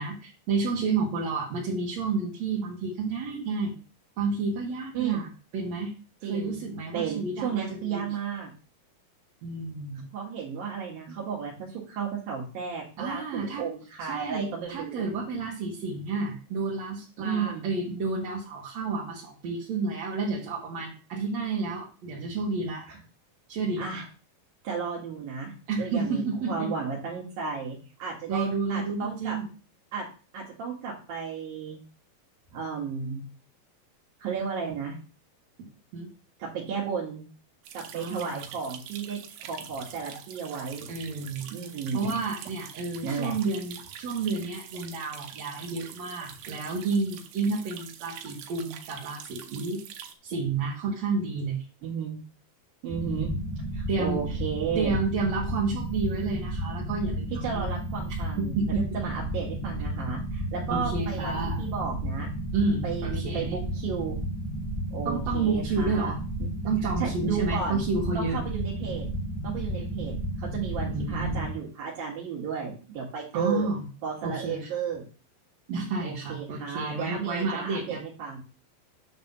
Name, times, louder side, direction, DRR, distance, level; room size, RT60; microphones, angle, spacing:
voice 1, 0.0-3.8 4.2-5.3 5.5-5.9 6.3-8.1 9.4-10.0 13.0-13.6 14.1-22.8 23.5-23.8 25.7-26.7 28.3-29.5 35.9-36.1 37.9-38.5 40.9-41.5 41.9-49.8 50.2-51.7 53.0-53.4 53.9-54.2 54.8-57.7 58.4-58.9 60.7-61.7 62.5-63.5 65.1-66.2 66.6-68.4 70.8-71.4 73.3-73.9 74.2-74.7 75.7-78.0, right 4 dB, 55° right, -5 dB, 2.6 m, -30 dB
voice 2, 6.2-6.6 6.9-8.5 10.1-15.1 17.2-17.7 22.9-23.0 23.8-24.1 24.6-25.5 25.8-29.4 29.9-30.1 30.3-31.8 32.5-33.2 34.2-35.0 36.4-37.3 37.7-40.9 41.5-42.2 43.0-43.4 51.8-52.2 52.8-53.3 53.7-55.0 57.3-61.3 61.6-62.3 62.8-64.2 64.9-66.5 67.0-67.8 68.2-69.1 69.4-73.7 74.0-75.1 76.0-78.4, right 6 dB, 70° right, -4 dB, 3.5 m, -33 dB
sound 1, 37.6-50.1, right 9 dB, 85° right, 2.8 m, -45 dB
sound 2, 52.9-71.5, right 1 dB, 25° left, 0.6 m, -32 dB
9.5 x 3.4 x 6.8 m, 0.36 s
omnidirectional pair, 4.3 m